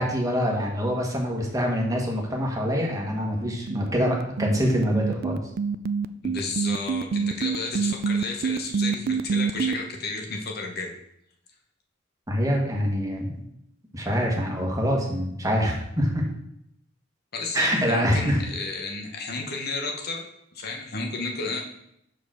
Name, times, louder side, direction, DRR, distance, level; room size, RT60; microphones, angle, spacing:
voice 1, 0.0-5.4 12.3-13.3 13.9-16.2 17.5-18.4, equal, 20° right, -1 dB, 1.4 m, -25 dB
sound 1, 3.4-9.7, right 6 dB, 50° right, 0.3 m, -26 dB
voice 2, 6.2-10.9 17.3-21.6, left 3 dB, 55° left, 2 dB, 0.9 m, -32 dB
5.2 x 4.5 x 6.1 m, 0.77 s
head